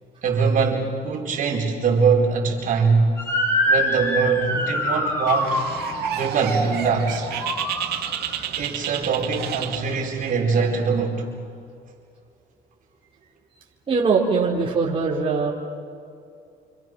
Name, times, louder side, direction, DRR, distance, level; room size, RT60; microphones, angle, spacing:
voice 1, 0.2-3.2 3.6-5.6 6.1-7.3 8.6-11.3, right 5 dB, 50° right, 0 dB, 4.5 m, -22 dB
Motor vehicle (road) / Siren, 3.2-8.4, equal, 15° left, 7.8 m, -25 dB
Bird, 5.3-10.3, right 11 dB, 75° right, 2.0 m, -32 dB
voice 2, 13.9-15.5, right 4 dB, 30° right, -4 dB, 4.0 m, -21 dB
29.5 x 27.0 x 6.2 m, 2.4 s
cardioid pair, 110°, 17 cm